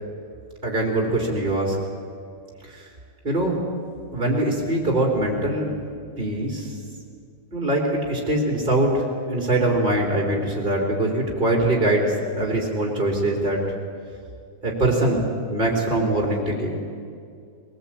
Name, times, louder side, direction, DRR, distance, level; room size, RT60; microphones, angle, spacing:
voice 1, 0.6-1.8 2.7-2.9 3.2-3.6 4.1-5.7 6.2-6.8 7.5-13.6 14.6-16.8, right 1 dB, 25° right, -1 dB, 3.7 m, -23 dB
21.5 x 20.0 x 8.7 m, 2.3 s
omnidirectional pair, 1.9 m